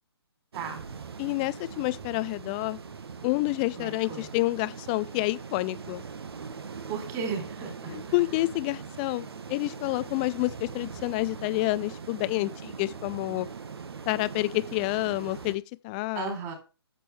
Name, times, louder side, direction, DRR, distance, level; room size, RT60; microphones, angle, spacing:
voice 1, 0.5-0.8 3.8-4.3 6.9-8.0 16.1-16.5, right 6 dB, 25° right, 3.6 m, -35 dB
sound 1, 0.5-15.6, right 5 dB, 65° right, 1.3 m, -41 dB
voice 2, 1.2-2.8 3.2-6.0 7.9-13.5 14.1-16.4, left 21 dB, 20° left, 0.4 m, -29 dB
10.0 x 7.6 x 3.2 m
figure-of-eight pair, 140°, 14 cm